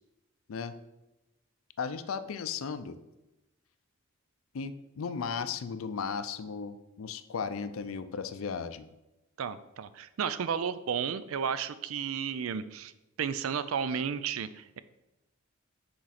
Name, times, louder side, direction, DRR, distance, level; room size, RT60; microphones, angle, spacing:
voice 1, 1.8-3.0 4.5-8.9, left 6 dB, 85° left, 12 dB, 0.4 m, -35 dB
voice 2, 9.4-12.9 13.2-14.8, right 7 dB, 90° right, 14 dB, 0.4 m, -33 dB
6.3 x 4.6 x 4.2 m, 0.97 s
head